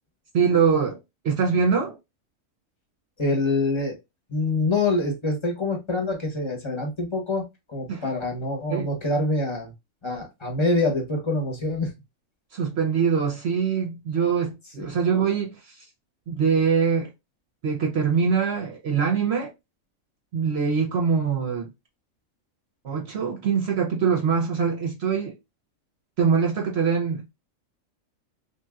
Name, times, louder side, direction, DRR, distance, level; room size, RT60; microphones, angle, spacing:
voice 1, 0.3-1.0 1.2-2.0 7.9-8.1 8.7-8.9 12.5-15.9 16.3-17.1 17.6-19.5 20.3-21.7 22.8-25.4 26.2-27.4, right 6 dB, 60° right, 0.9 m, -23 dB
voice 2, 3.2-4.0 4.3-7.4 7.7-9.7 10.0-11.9 14.8-15.0, left 2 dB, 25° left, 0.9 m, -25 dB
3.4 x 2.8 x 2.3 m
omnidirectional pair, 1.4 m